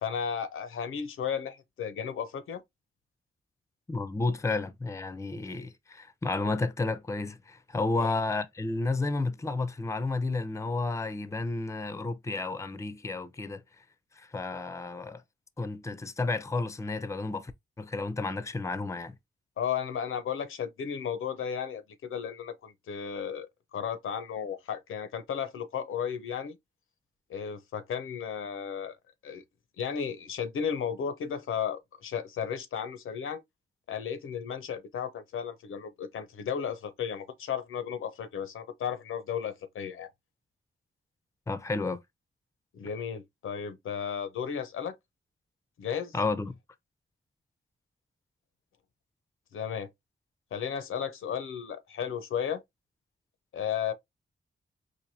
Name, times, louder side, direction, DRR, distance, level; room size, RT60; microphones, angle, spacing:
voice 1, 0.0-2.6 8.0-8.1 19.6-26.6 27.3-29.0 29.2-29.4 29.8-33.4 33.9-40.1 42.7-45.0 45.8-46.1 49.5-49.9 50.5-52.6 53.5-53.9, left 7 dB, 85° left, 0.7 m, -34 dB
voice 2, 3.9-13.6 14.2-15.2 15.6-17.5 17.8-19.2 41.5-42.0 46.1-46.6, left 3 dB, 15° left, 0.5 m, -31 dB
4.5 x 2.6 x 2.6 m
cardioid pair, 65°, 21 cm